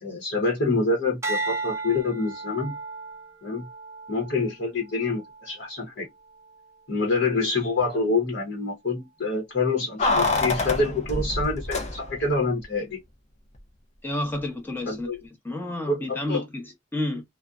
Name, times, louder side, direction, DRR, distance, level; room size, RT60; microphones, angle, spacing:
voice 1, 0.0-2.7 3.4-3.7 4.1-6.1 6.9-13.0 14.9-15.2 15.9-16.4, left 3 dB, 60° left, 0.9 m, -26 dB
sound 1, 1.2-5.7 6.2-6.6, right 3 dB, 15° right, 0.6 m, -35 dB
Keys jangling, 10.0-12.4 12.6-12.7, left 2 dB, 35° left, 0.5 m, -26 dB
voice 2, 14.0-15.1 15.4-17.2, left 1 dB, 10° left, 0.8 m, -30 dB
2.5 x 2.1 x 2.4 m
head